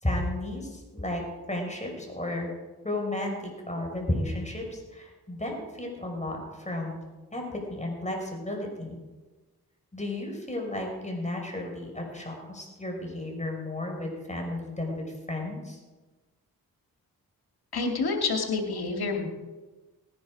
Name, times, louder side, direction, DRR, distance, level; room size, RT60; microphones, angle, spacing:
voice 1, 0.0-1.2 1.5-2.5 2.8-7.0 7.3-9.0 9.9-15.8, left 1 dB, 20° left, 1 dB, 5.4 m, -33 dB
voice 2, 17.7-19.3, left 4 dB, 80° left, 3 dB, 2.4 m, -28 dB
19.0 x 10.5 x 4.9 m, 1.2 s
cardioid pair, 40°, 37 cm